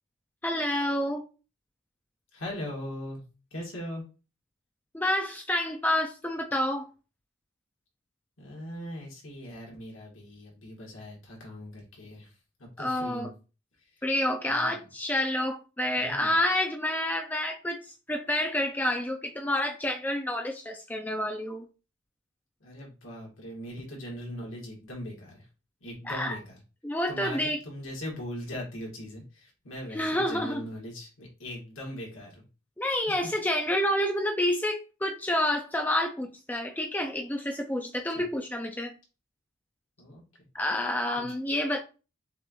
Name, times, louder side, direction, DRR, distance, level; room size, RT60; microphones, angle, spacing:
voice 1, 0.4-1.2 4.9-6.9 12.8-13.3 14.0-17.8 18.1-21.7 26.0-26.4 26.8-27.6 29.9-30.6 32.8-38.9 40.5-41.8, left 1 dB, 10° left, 0.4 m, -28 dB
voice 2, 2.3-3.2 3.5-4.0 8.4-12.3 12.8-13.3 14.5-14.8 16.0-16.3 22.6-25.5 25.8-26.6 27.1-32.4 33.1-33.2 40.0-40.2 41.2-41.3, equal, 75° left, 1.9 m, -40 dB
6.2 x 2.5 x 3.0 m
head